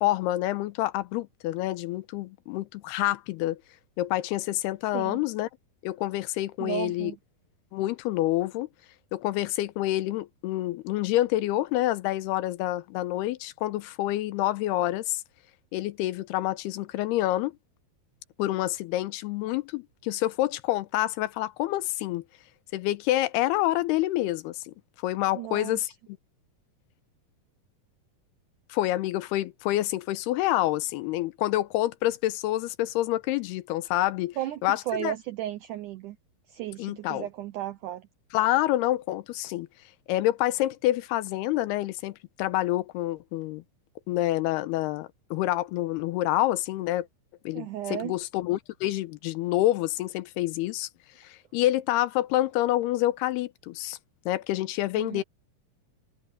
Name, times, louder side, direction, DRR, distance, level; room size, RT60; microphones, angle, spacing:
voice 1, 0.0-3.6 4.0-5.5 5.8-7.1 7.7-8.7 9.1-15.2 15.7-17.5 18.4-22.2 22.7-24.7 25.0-25.9 28.7-34.4 34.6-35.1 36.8-37.3 38.3-39.7 40.1-43.6 44.1-47.1 47.5-50.9 51.2-54.0 54.3-55.2, left 15 dB, 90° left, 2.8 m, -27 dB
voice 2, 6.6-7.2 25.3-25.9 34.4-36.2 36.5-38.1 47.5-48.2 55.0-55.2, right 13 dB, 85° right, 1.8 m, -34 dB
omnidirectional pair, 4.5 m